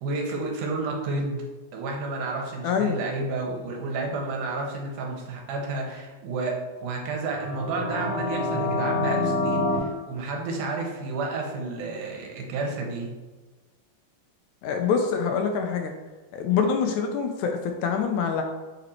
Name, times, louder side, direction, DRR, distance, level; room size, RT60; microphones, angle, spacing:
voice 1, 0.0-1.4 1.7-13.1, right 3 dB, 80° right, 1 dB, 2.5 m, -31 dB
voice 2, 2.6-3.0 14.6-15.9 16.3-18.4, left 6 dB, 80° left, 4 dB, 1.8 m, -25 dB
sound 1, 7.2-9.8, left 2 dB, 20° left, 1.1 m, -27 dB
6.7 x 4.2 x 4.2 m, 1.3 s
omnidirectional pair, 3.7 m